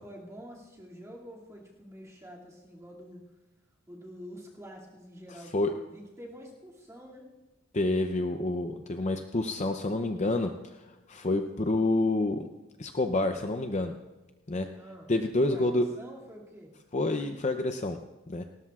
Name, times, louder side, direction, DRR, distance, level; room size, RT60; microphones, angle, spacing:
voice 1, 0.0-3.2 3.9-7.3 14.7-15.1 15.5-16.7, equal, 15° right, -4 dB, 2.4 m, -47 dB
voice 2, 7.7-12.5 12.8-13.9 14.5-14.7 15.1-15.9 16.9-18.0 18.3-18.4, left 2 dB, 30° left, 6 dB, 0.6 m, -28 dB
29.5 x 13.0 x 2.4 m, 1.1 s
head